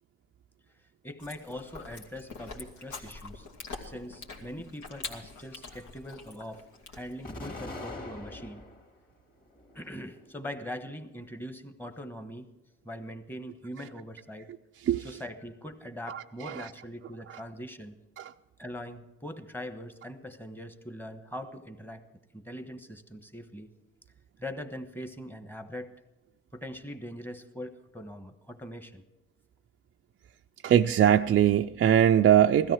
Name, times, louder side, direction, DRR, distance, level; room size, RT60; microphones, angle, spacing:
voice 1, 1.0-3.5 3.8-6.6 6.9-8.6 9.7-12.5 12.8-14.5 15.0-18.0 18.6-22.0 22.3-23.7 24.4-25.9 26.5-29.0, equal, 5° left, 1.2 m, -41 dB
Chewing mastication, 1.2-7.3, left 3 dB, 75° left, 2.3 m, -44 dB
Explosion, 7.2-8.9 9.4-10.3, left 2 dB, 30° left, 2.4 m, -42 dB
voice 2, 16.1-16.7 18.2-18.3 30.6-32.7, right 10 dB, 40° right, 0.4 m, -22 dB
16.5 x 13.5 x 4.7 m
cardioid pair, 90°, 30 cm